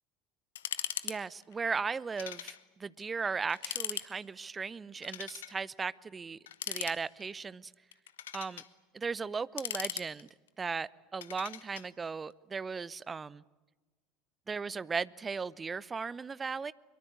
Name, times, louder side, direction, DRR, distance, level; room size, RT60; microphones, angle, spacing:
sound 1, 0.6-1.2 1.4-1.5 2.2-2.6 3.0-3.1 3.5-4.1 5.0-5.6 6.5-7.3 7.9-8.7 9.3-10.5 11.2-11.9, left 11 dB, 65° left, 1.2 m, -39 dB
voice 1, 1.0-7.7 8.3-8.6 8.9-10.3 10.6-13.4 14.5-16.7, right 5 dB, 20° right, 21 dB, 0.7 m, -37 dB
23.5 x 23.5 x 8.7 m, 1.2 s
figure-of-eight pair, 75°, 0 cm